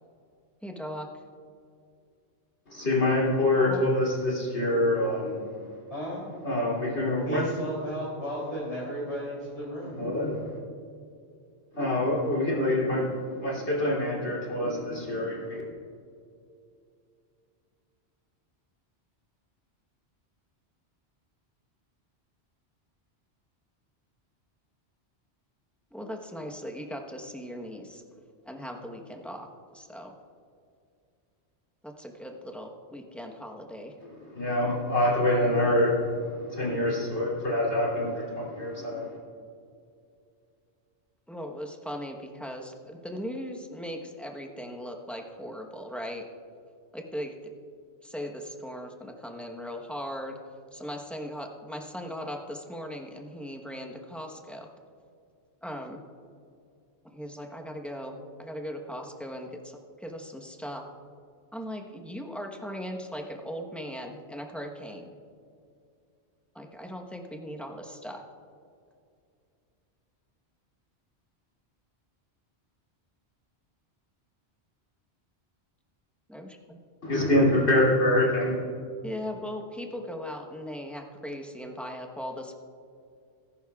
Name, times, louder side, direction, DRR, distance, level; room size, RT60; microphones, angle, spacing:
voice 1, 0.6-1.1 3.7-3.8 25.9-28.0 28.4-29.5 29.7-30.1 31.8-34.0 41.3-46.2 46.9-47.3 48.0-50.4 50.7-54.7 55.6-56.0 57.0-60.8 61.5-65.2 66.5-68.2 76.3-76.8 79.0-82.6, equal, ahead, 1 dB, 0.9 m, -38 dB
voice 2, 2.7-5.4 6.4-7.4 9.8-10.6 11.7-15.6 34.3-39.2 77.0-78.6, left 1 dB, 85° left, -5 dB, 3.2 m, -25 dB
voice 3, 5.9-6.2 7.2-10.1, equal, 30° left, -7 dB, 3.0 m, -34 dB
19.5 x 11.0 x 2.4 m, 2.4 s
omnidirectional pair, 1.1 m